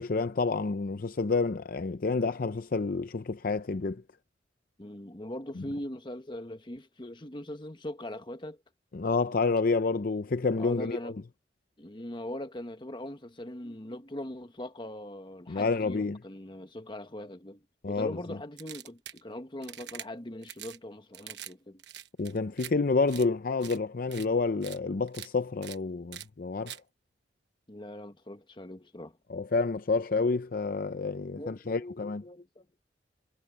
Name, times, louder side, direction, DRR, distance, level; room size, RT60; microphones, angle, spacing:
voice 1, 0.0-4.0 5.6-5.7 8.9-11.1 15.5-16.2 17.8-18.4 22.2-26.8 29.3-32.2, left 3 dB, 50° left, 0.6 m, -29 dB
voice 2, 4.8-8.6 10.6-11.1 11.8-21.8 27.7-29.2 31.4-32.7, left 1 dB, 25° left, 1.3 m, -41 dB
sound 1, 18.6-19.2 19.6-20.1 20.4-20.8 21.1-21.5 21.8-22.7 23.1-23.3 23.6-23.8 24.1-24.3 24.6-24.8 25.1-25.3 25.6-25.8 26.1-26.3 26.7-26.8, right 11 dB, 70° right, 1.2 m, -44 dB
head